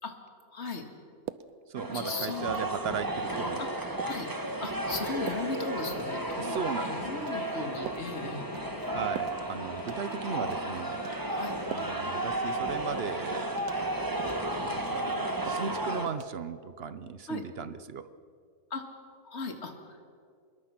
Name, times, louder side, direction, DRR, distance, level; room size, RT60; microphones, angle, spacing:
voice 1, 0.5-0.9 1.9-2.7 3.6-3.7 4.0-4.3 4.6-6.5 6.8-8.5 11.3-11.5 17.3-17.4 18.7-18.8 19.2-20.1, left 3 dB, 50° left, 5 dB, 2.3 m, -37 dB
sound 1, 1.3-1.5 1.9-2.3 2.6-2.9 3.3-3.5 4.0-4.2 4.6-4.8 5.3-5.5 5.9-6.1 6.6-6.8 7.2-7.5 7.9-8.1 8.5-8.9 9.2-9.4 9.8-10.1 10.4-10.6 11.0-11.2 11.7-12.1 12.4-12.5 13.0-13.2 13.6-13.8 14.2-14.4 14.8-15.1 15.5-15.7 16.1-16.2, right 10 dB, 80° right, 1.2 m, -43 dB
voice 2, 1.7-3.6 6.4-7.3 8.9-11.0 11.7-13.5 14.6-18.1, right 6 dB, 50° right, 13 dB, 0.9 m, -37 dB
sound 2, 1.8-16.1, right 1 dB, 15° right, 1.4 m, -33 dB
sound 3, 5.6-14.5, left 3 dB, 75° left, 2.3 m, -49 dB
25.0 x 21.5 x 5.9 m, 2.2 s
omnidirectional pair, 1.6 m